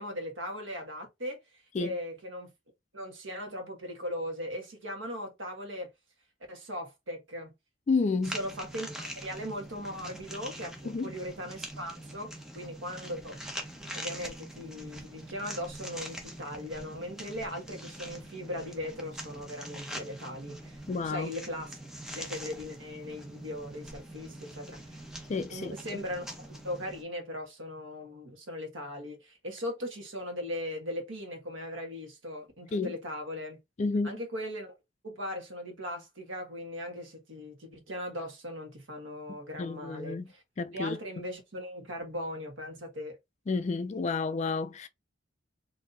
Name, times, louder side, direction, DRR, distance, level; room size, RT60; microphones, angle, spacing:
voice 1, 0.0-2.5 2.9-5.9 6.5-7.5 8.2-13.4 13.9-21.8 22.1-25.0 25.5-33.6 34.0-34.7 35.0-40.4 40.7-43.2, equal, 70° right, 1.3 m, -39 dB
voice 2, 7.9-8.4 10.9-11.1 20.9-21.3 25.3-25.7 32.7-32.9 33.8-34.2 39.6-40.3 40.6-41.0 43.5-44.9, left 4 dB, 35° left, 0.3 m, -30 dB
sound 1, 8.2-27.0, right 1 dB, 5° right, 0.7 m, -43 dB
4.0 x 2.7 x 2.6 m
head